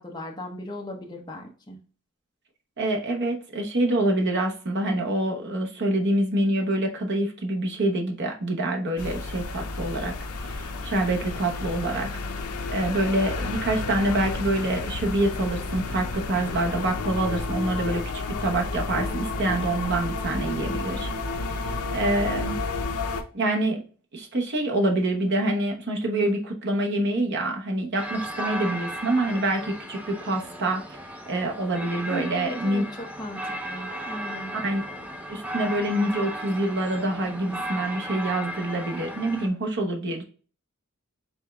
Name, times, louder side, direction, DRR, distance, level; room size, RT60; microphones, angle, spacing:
voice 1, 0.0-1.8 32.1-34.5, equal, 20° left, 1 dB, 0.8 m, -37 dB
voice 2, 2.8-10.1 10.4-12.1 12.4-21.1 21.4-22.5 23.3-23.8 24.1-31.0 31.3-32.8 34.5-34.8 35.3-40.2, right 1 dB, 50° right, 2 dB, 0.9 m, -26 dB
sound 1, 9.0-23.2, left 3 dB, 80° left, 0.6 m, -31 dB
sound 2, 27.9-39.5, right 1 dB, 5° right, 0.4 m, -35 dB
5.1 x 3.6 x 2.3 m, 0.39 s
head